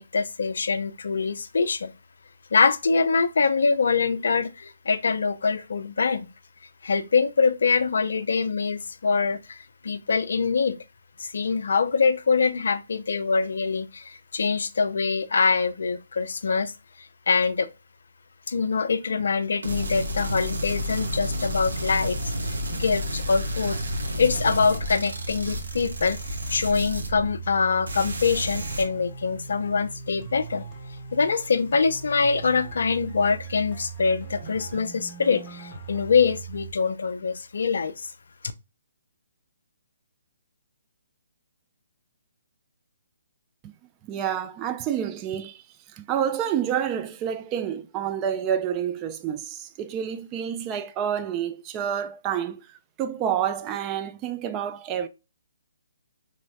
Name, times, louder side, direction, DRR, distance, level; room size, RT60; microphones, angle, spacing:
voice 1, 0.0-1.9 2.5-6.3 6.8-10.8 11.2-16.7 17.3-17.7 18.5-23.8 24.2-26.2 26.5-30.7 31.1-38.1, left 5 dB, 60° left, 0.4 m, -24 dB
sound 1, 19.6-27.6 27.9-28.8, equal, 70° right, 1.1 m, -31 dB
sound 2, 20.7-36.7, right 5 dB, 10° left, 1.0 m, -40 dB
voice 2, 44.1-55.1, right 9 dB, 20° right, 0.3 m, -29 dB
5.0 x 3.1 x 2.3 m
figure-of-eight pair, 135°, 0 cm